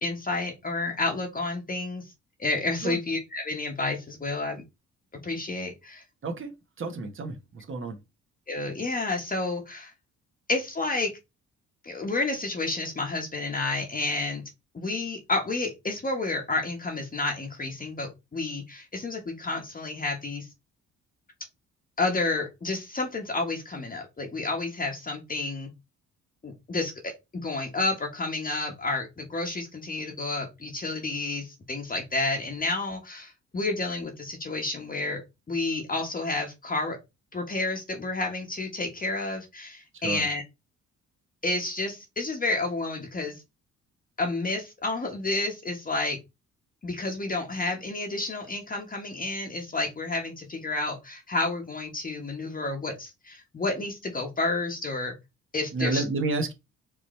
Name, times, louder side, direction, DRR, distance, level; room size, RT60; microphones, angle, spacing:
voice 1, 0.0-2.0 2.4-4.6 5.2-6.0 8.5-9.9 10.5-11.1 11.8-14.4 14.7-20.5 22.0-25.7 26.4-35.2 35.5-37.0 37.3-40.4 41.4-43.3 44.2-46.2 46.8-55.1 55.5-56.0, left 2 dB, 30° left, 2 dB, 1.2 m, -30 dB
voice 2, 6.8-8.0 40.0-40.2 55.7-56.5, right 3 dB, 40° right, 4 dB, 1.2 m, -30 dB
5.0 x 3.1 x 3.1 m, 0.23 s
cardioid pair, 90°, 30 cm